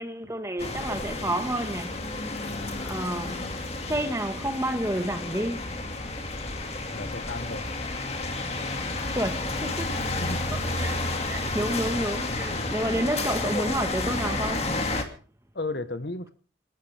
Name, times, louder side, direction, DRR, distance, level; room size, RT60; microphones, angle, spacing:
voice 1, 0.0-2.1 2.8-3.5 3.9-5.7 8.7-10.0 10.8-14.7, right 1 dB, 15° right, 1.5 m, -30 dB
sound 1, 0.6-15.0, left 2 dB, 35° left, 2.3 m, -31 dB
voice 2, 6.9-7.8 10.2-10.4 15.5-16.3, left 2 dB, 60° left, 1.4 m, -34 dB
27.5 x 13.0 x 3.5 m
head